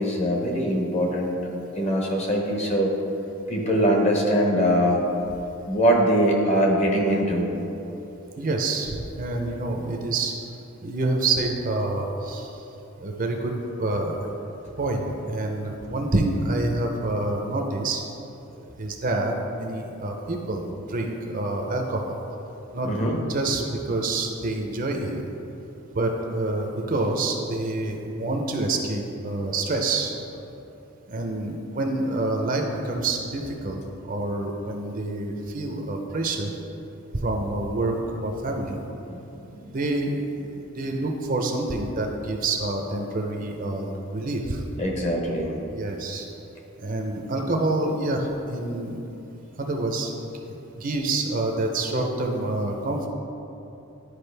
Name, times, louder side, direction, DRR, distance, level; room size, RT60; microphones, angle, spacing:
voice 1, 0.0-1.4 1.8-2.9 3.5-5.0 5.7-7.5 22.9-23.2 39.1-39.2 39.5-39.7 44.8-45.5, equal, 30° left, 0 dB, 0.9 m, -22 dB
voice 2, 8.4-10.3 10.8-12.6 13.0-13.5 13.8-14.4 14.8-18.0 18.8-20.6 20.9-22.2 22.7-22.9 23.3-25.2 25.9-30.1 31.1-36.5 37.2-38.8 39.7-44.6 45.7-46.3 46.8-49.0 49.6-50.2 50.5-53.1, right 2 dB, 40° right, 2 dB, 0.6 m, -27 dB
10.5 x 4.9 x 3.3 m, 2.9 s
head